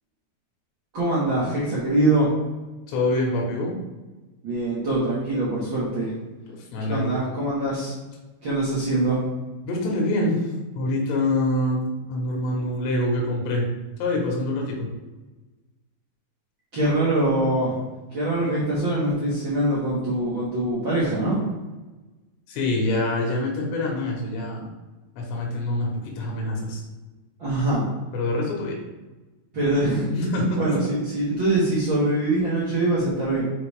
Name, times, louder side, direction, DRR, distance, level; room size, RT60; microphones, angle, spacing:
voice 1, 0.9-2.3 4.4-6.1 6.9-7.9 8.4-9.2 16.7-17.8 18.1-21.4 27.4-27.9 29.5-30.1 30.6-33.4, right 1 dB, 80° right, -8 dB, 1.1 m, -23 dB
voice 2, 2.9-3.7 6.7-7.2 9.6-10.4 10.8-13.7 14.0-14.9 22.5-24.7 25.2-26.8 28.1-28.7 30.1-30.8, left 1 dB, 80° left, -1 dB, 3.4 m, -25 dB
8.2 x 4.8 x 3.4 m, 1.1 s
omnidirectional pair, 4.9 m